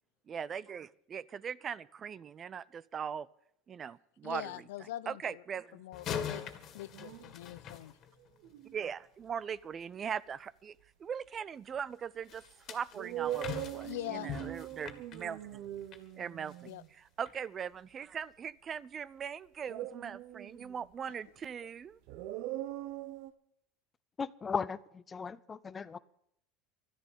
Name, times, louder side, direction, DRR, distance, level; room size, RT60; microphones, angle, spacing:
voice 1, 0.3-3.3 3.7-4.5 5.1-5.8 8.7-10.7 11.0-15.6 16.2-16.7 17.2-22.0, right 7 dB, 35° right, 21 dB, 0.5 m, -40 dB
voice 2, 4.2-5.4 5.7-6.4 6.7-8.0 13.8-14.3 16.6-16.8, left 15 dB, 85° left, 19 dB, 0.5 m, -43 dB
sound 1, 5.9-8.5 12.3-16.1 16.5-16.7 17.3-17.4, left 8 dB, 50° left, 2.0 m, -42 dB
sound 2, 6.9-7.3 8.2-8.8 11.8-11.9 12.9-16.9 19.7-20.9 22.1-23.3, right 13 dB, 65° right, 1.0 m, -41 dB
voice 3, 24.2-26.0, left 5 dB, 25° left, 14 dB, 0.6 m, -37 dB
13.0 x 10.0 x 9.1 m, 0.72 s
supercardioid pair, 105°, 0 cm